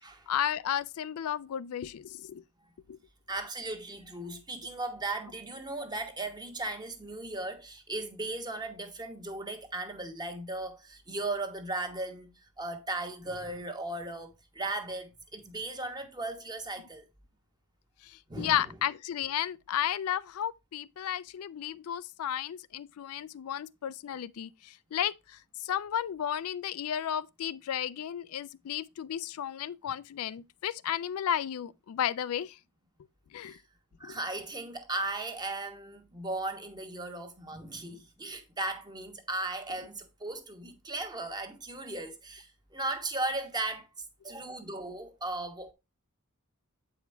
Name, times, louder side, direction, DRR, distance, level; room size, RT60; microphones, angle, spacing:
voice 1, 0.3-2.4 2.9-3.0 18.0-32.6 33.3-33.6 34.0-34.2, left 10 dB, 80° left, 0.4 m, -33 dB
voice 2, 3.3-17.0 18.3-18.6 33.4-33.6 34.0-45.7, right 2 dB, 20° right, 1.1 m, -37 dB
8.0 x 5.0 x 3.2 m
head